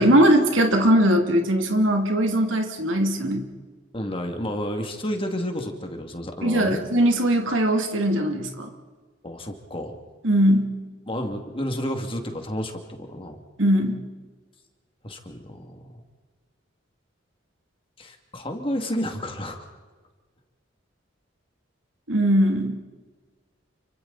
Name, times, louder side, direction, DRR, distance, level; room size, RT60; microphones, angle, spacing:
voice 1, 0.0-3.4 6.4-8.7 10.2-10.7 13.6-14.0 22.1-22.8, right 1 dB, 90° right, 3 dB, 2.8 m, -20 dB
voice 2, 3.9-6.8 9.2-10.0 11.1-13.4 15.0-16.0 18.0-19.7, equal, 30° left, 4 dB, 2.5 m, -31 dB
29.5 x 25.0 x 4.2 m, 1.4 s
head